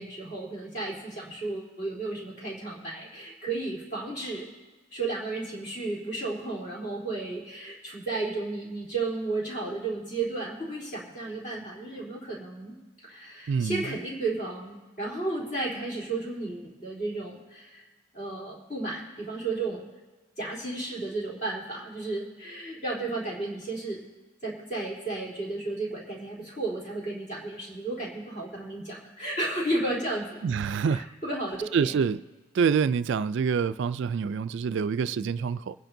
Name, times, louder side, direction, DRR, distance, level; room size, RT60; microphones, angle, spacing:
voice 1, 0.0-4.5 4.9-12.7 13.0-17.8 18.1-19.8 20.4-24.0 24.4-32.0, right 2 dB, 35° left, 3.4 m, -33 dB
voice 2, 13.5-13.8 30.4-31.1 31.7-32.2 32.5-35.7, right 6 dB, 60° right, 0.3 m, -26 dB
25.0 x 10.5 x 2.7 m
head